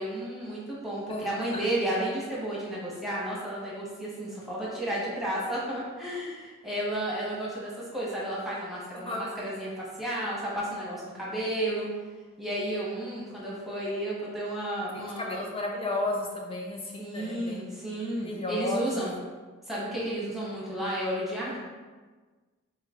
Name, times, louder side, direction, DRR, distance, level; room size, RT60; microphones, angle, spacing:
voice 1, 0.0-11.9 12.4-15.4 17.0-19.1 19.7-21.6, right 1 dB, ahead, -7 dB, 0.9 m, -32 dB
voice 2, 1.1-1.6 8.9-9.2 14.9-17.7 18.2-19.1, left 2 dB, 25° left, 0 dB, 0.5 m, -33 dB
3.8 x 3.1 x 3.6 m, 1.4 s
head